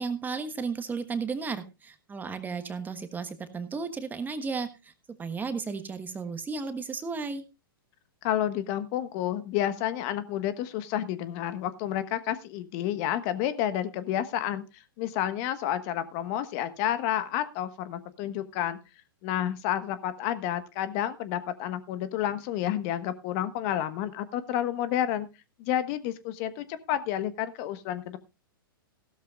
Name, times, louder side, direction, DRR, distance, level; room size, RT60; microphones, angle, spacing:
voice 1, 0.0-4.9 5.2-7.4, right 4 dB, 15° right, 9 dB, 1.3 m, -34 dB
voice 2, 8.2-18.8 19.2-25.3 25.6-28.2, left 11 dB, 45° left, 12 dB, 1.3 m, -30 dB
16.0 x 13.0 x 2.4 m, 0.26 s
hypercardioid pair, 115°, 12 cm